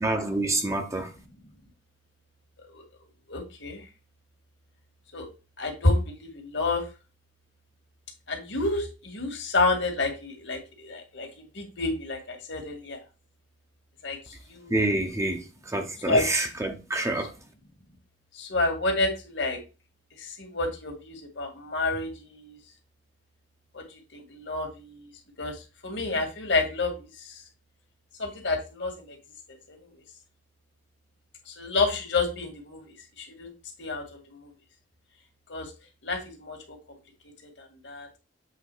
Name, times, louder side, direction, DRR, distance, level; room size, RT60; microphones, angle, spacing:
voice 1, 0.0-1.1 14.7-17.3, right 2 dB, 15° right, 0.9 m, -27 dB
voice 2, 3.3-3.8 5.1-5.3 5.6-6.8 8.3-13.0 14.0-14.2 14.5-14.7 16.1-16.2 18.3-19.6 20.2-22.6 23.7-25.1 25.4-25.6 25.8-27.3 28.2-29.2 29.5-29.9 31.5-32.8 33.2-33.5 33.8-34.5 35.5-35.7 36.0-36.8 37.6-38.2, left 2 dB, 70° left, 2.0 m, -29 dB
7.6 x 3.6 x 4.8 m
head